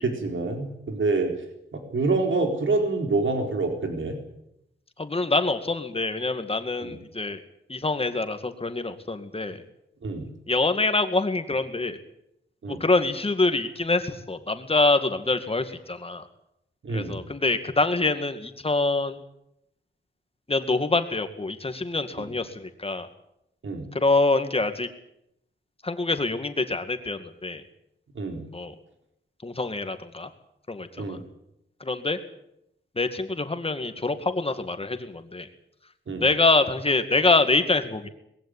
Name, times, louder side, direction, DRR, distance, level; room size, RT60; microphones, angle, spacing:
voice 1, 0.0-1.3 1.7-4.2 6.8-7.0 10.0-10.3 12.6-12.8 16.8-17.2 23.6-23.9 28.1-28.4 30.9-31.2 36.1-36.3, right 3 dB, 75° right, 4 dB, 4.2 m, -26 dB
voice 2, 5.0-7.4 7.7-9.6 10.5-12.0 12.7-16.3 16.9-19.2 20.5-23.1 23.9-24.9 25.8-27.6 28.5-28.7 29.4-30.3 30.7-31.2 31.8-32.2 33.0-35.5 36.2-38.1, left 3 dB, 30° left, 9 dB, 2.2 m, -25 dB
21.0 x 16.0 x 10.0 m, 0.80 s
wide cardioid pair, 105°, 20 cm